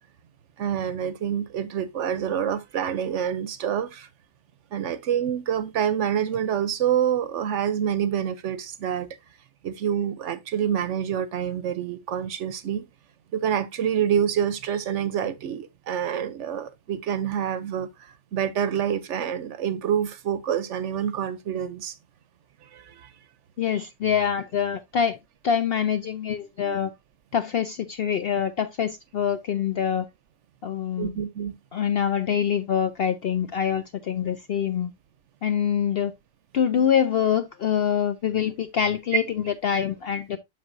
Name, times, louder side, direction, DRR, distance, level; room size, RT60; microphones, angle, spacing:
voice 1, 0.6-4.1 4.7-9.1 9.6-12.8 13.3-22.0 22.6-23.1 23.7-23.9 31.0-31.5, right 9 dB, 65° right, 0.9 m, -27 dB
voice 2, 23.6-25.2 25.4-26.9 27.3-30.1 30.6-31.2 31.7-34.9 35.4-36.1 36.5-40.4, left 8 dB, 65° left, 0.6 m, -25 dB
7.7 x 6.3 x 2.5 m
omnidirectional pair, 1.5 m